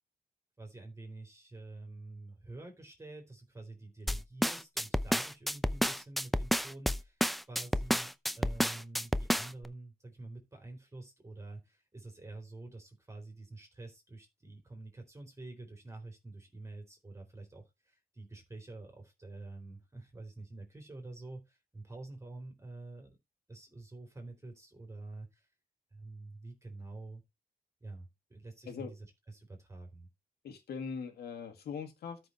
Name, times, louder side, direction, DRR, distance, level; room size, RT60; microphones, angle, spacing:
voice 1, 0.6-7.2 7.5-23.2 23.5-25.4 25.9-27.2 27.8-30.1, right 2 dB, 20° right, 3.9 m, -48 dB
sound 1, 4.1-9.7, equal, ahead, 0.6 m, -30 dB
voice 2, 30.4-32.2, left 6 dB, 85° left, 2.1 m, -41 dB
13.0 x 6.0 x 3.2 m
cardioid pair, 90°, 16 cm